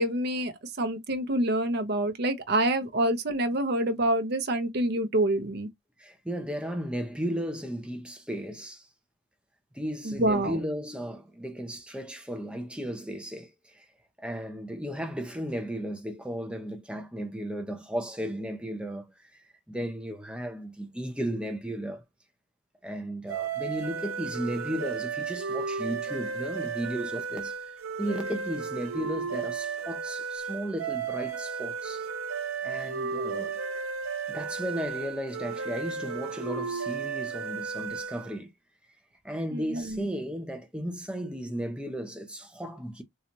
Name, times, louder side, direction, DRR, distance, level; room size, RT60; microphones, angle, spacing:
voice 1, 0.0-5.7 10.1-10.6 39.5-40.0, right 1 dB, 50° right, 0.7 m, -27 dB
voice 2, 6.0-8.9 9.7-13.9 14.2-22.0 22.8-32.1 32.6-33.6 34.3-38.5 39.2-43.0, equal, 5° right, 0.6 m, -35 dB
sound 1, 23.3-38.4, right 5 dB, 80° right, 0.8 m, -34 dB
4.0 x 2.3 x 2.9 m
head